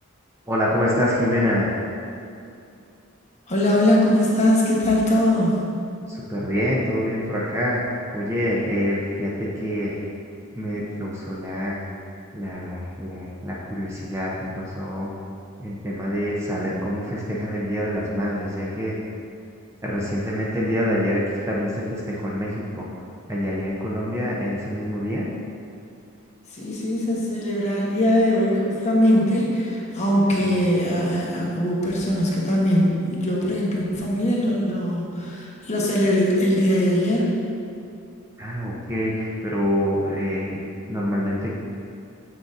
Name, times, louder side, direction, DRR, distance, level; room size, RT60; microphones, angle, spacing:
voice 1, 0.5-1.7 6.1-10.0 10.5-11.7 12.3-15.1 15.6-19.0 19.8-21.2 21.5-22.9 23.3-25.3 30.3-30.4 38.4-40.6 40.9-41.5, equal, 15° right, -5 dB, 0.6 m, -26 dB
voice 2, 3.5-5.5 26.5-37.3, left 1 dB, 35° left, -4 dB, 1.1 m, -21 dB
7.3 x 6.2 x 2.6 m, 2.5 s
head